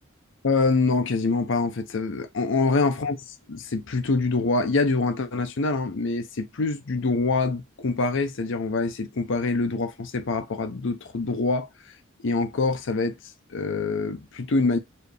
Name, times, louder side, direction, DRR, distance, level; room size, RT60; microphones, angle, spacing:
voice 1, 0.4-3.2 3.5-11.7 12.2-13.2 13.5-14.8, left 3 dB, 65° left, 0.7 m, -25 dB
4.3 x 2.8 x 3.3 m
head